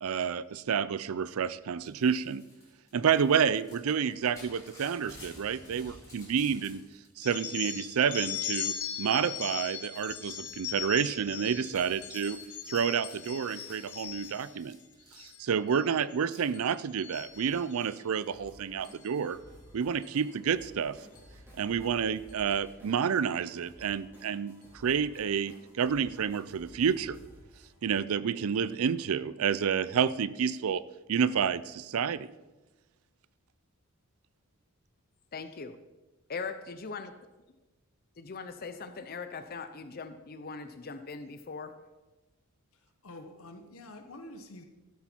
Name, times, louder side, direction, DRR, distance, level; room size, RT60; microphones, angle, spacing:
voice 1, 0.0-2.4 2.9-6.8 7.2-12.4 12.7-14.8 15.2-19.4 19.7-21.0 21.5-27.2 27.8-30.8 31.1-32.3, right 7 dB, 70° right, 17 dB, 0.4 m, -29 dB
Crumpling crinkling / Tearing, 1.8-7.1 7.4-8.2 8.7-9.1 9.4-15.7 16.3-16.5, left 1 dB, 15° left, 3.5 m, -54 dB
sound 1, 7.2-14.5 15.0-15.4 15.7-16.1 16.5-17.9 18.8-19.1 20.0-20.2 21.2-21.3 21.6-21.7 22.3-22.5, left 10 dB, 85° left, 1.3 m, -39 dB
sound 2, 17.1-28.0, equal, 10° right, 4.2 m, -55 dB
voice 2, 35.3-35.8 36.3-37.3 38.2-41.7, left 4 dB, 45° left, 9 dB, 0.6 m, -40 dB
voice 3, 42.7-44.6, left 1 dB, 70° left, 5 dB, 1.0 m, -47 dB
13.0 x 8.3 x 4.4 m, 1.1 s
head